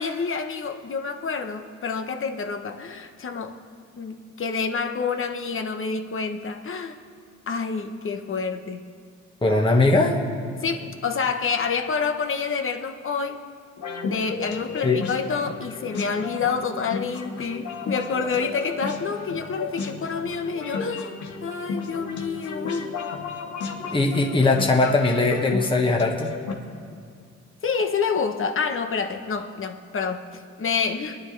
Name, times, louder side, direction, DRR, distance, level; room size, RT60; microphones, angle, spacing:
voice 1, 0.0-3.6 4.0-7.0 7.5-8.8 10.6-13.4 14.0-21.1 21.4-22.9 27.6-31.2, left 5 dB, 45° left, 5 dB, 1.2 m, -28 dB
voice 2, 9.4-10.2 14.8-15.0 23.9-26.3, left 2 dB, 15° left, 0 dB, 1.6 m, -20 dB
sound 1, 13.8-26.5, left 4 dB, 70° left, 1.7 m, -33 dB
25.0 x 10.0 x 3.4 m, 2.3 s
cardioid pair, 90°, 30 cm